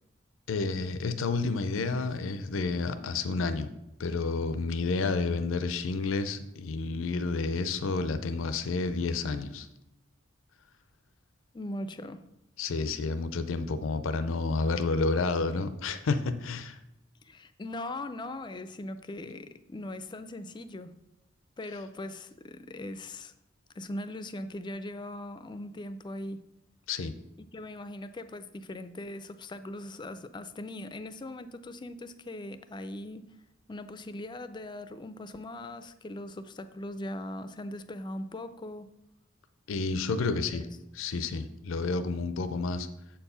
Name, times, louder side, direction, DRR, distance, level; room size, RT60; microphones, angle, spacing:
voice 1, 0.5-3.7 4.0-9.7 12.6-16.8 26.9-27.1 39.7-40.7 40.9-42.9, left 3 dB, 80° left, 11 dB, 0.5 m, -30 dB
voice 2, 11.5-12.2 13.6-13.7 17.2-20.9 21.6-23.3 23.8-26.4 27.4-33.3 33.7-38.9 40.5-40.7, left 1 dB, 25° left, 12 dB, 0.4 m, -40 dB
7.3 x 4.5 x 5.5 m, 0.89 s
head